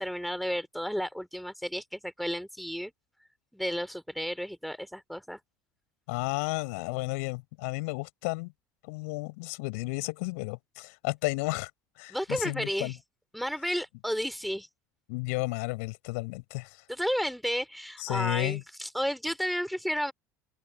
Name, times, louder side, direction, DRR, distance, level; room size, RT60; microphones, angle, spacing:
voice 1, 0.0-2.9 3.5-5.4 12.1-13.0 13.3-14.7 16.9-20.1, equal, ahead, 3.7 m, -32 dB
voice 2, 6.1-8.5 8.9-11.7 12.0-12.9 15.1-16.8 18.0-18.6, left 28 dB, 60° left, 6.5 m, -32 dB
open air
figure-of-eight pair, 65°, 9 cm